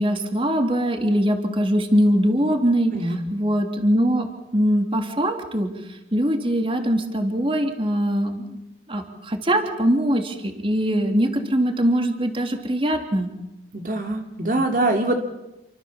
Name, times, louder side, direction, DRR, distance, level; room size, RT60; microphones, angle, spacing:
voice 1, 0.0-8.6 8.9-13.3, equal, 30° right, 5 dB, 3.1 m, -22 dB
voice 2, 13.7-15.2, right 2 dB, 50° right, 3 dB, 2.7 m, -23 dB
29.5 x 25.0 x 7.3 m, 0.92 s
head